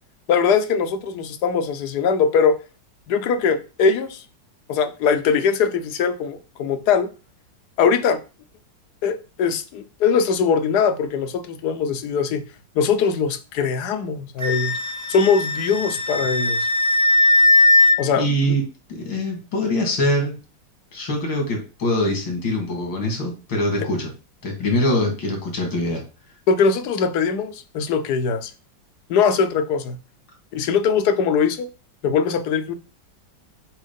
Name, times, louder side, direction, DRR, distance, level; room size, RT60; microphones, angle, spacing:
voice 1, 0.3-2.5 3.1-4.2 4.7-7.1 7.8-8.2 9.0-12.4 12.8-14.8 15.1-16.7 18.0-18.5 26.5-28.5 29.1-30.0 30.5-31.7 32.0-32.7, left 6 dB, 65° left, 1.2 m, -21 dB
Wind instrument woodwind instrument, 14.4-18.0, left 2 dB, 35° right, 0.7 m, -18 dB
voice 2, 18.2-18.6 18.9-20.4 20.9-24.1 24.4-26.0, left 1 dB, 85° left, 2.8 m, -23 dB
7.4 x 3.2 x 5.2 m
omnidirectional pair, 2.0 m